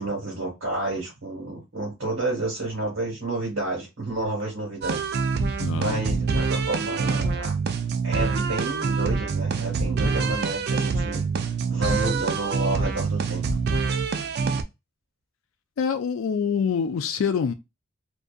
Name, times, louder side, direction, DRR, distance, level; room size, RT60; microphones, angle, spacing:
voice 1, 0.0-5.1 5.7-7.5 8.0-13.4, right 2 dB, 90° right, 1.4 m, -30 dB
sound 1, 4.8-14.6, right 4 dB, 55° right, 0.4 m, -25 dB
voice 2, 5.6-6.0 15.8-17.5, left 6 dB, 85° left, 0.4 m, -25 dB
2.6 x 2.5 x 2.3 m
head